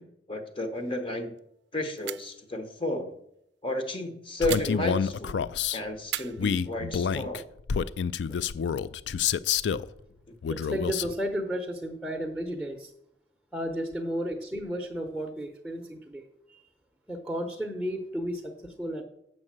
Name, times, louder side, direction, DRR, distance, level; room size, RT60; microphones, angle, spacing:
voice 1, 0.0-1.3 1.7-3.1 3.6-5.4 5.7-7.4, left 1 dB, 30° left, 6 dB, 1.0 m, -32 dB
sound 1, 0.7-1.1 1.4-1.5 2.0-2.4 4.5-5.3 6.1-7.2, right 15 dB, 80° right, 0.4 m, -39 dB
Male speech man speaking, 4.4-5.8 6.4-9.9 10.4-11.1, left 7 dB, 90° left, 0.4 m, -28 dB
voice 2, 10.5-12.9 13.5-16.6 17.1-19.0, equal, ahead, 0 dB, 0.8 m, -33 dB
7.7 x 6.3 x 7.4 m, 0.78 s
head